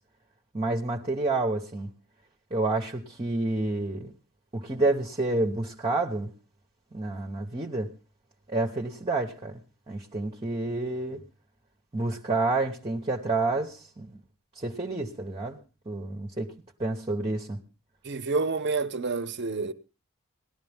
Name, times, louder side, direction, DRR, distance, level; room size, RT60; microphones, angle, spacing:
voice 1, 0.5-1.9 2.5-4.1 4.5-6.3 6.9-7.9 8.5-9.6 9.9-11.2 11.9-14.2 14.6-15.6 15.9-16.5 16.8-17.6, right 2 dB, 25° right, 1.1 m, -29 dB
voice 2, 18.0-19.7, right 3 dB, 55° right, 0.9 m, -28 dB
18.5 x 12.0 x 3.5 m
head